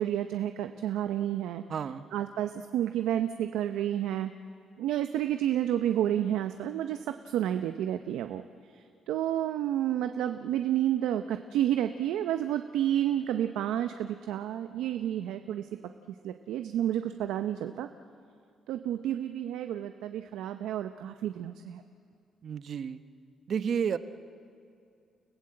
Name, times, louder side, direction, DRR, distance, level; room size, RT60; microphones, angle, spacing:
voice 1, 0.0-1.6 2.1-4.3 4.8-8.4 8.7-15.7 16.2-17.9 18.7-21.8, right 11 dB, 90° right, 8 dB, 0.7 m, -30 dB
voice 2, 1.7-2.0 22.4-23.0 23.5-24.0, right 7 dB, 55° right, 12 dB, 0.9 m, -31 dB
30.0 x 16.0 x 7.8 m, 2.4 s
cardioid pair, 90°, 0 cm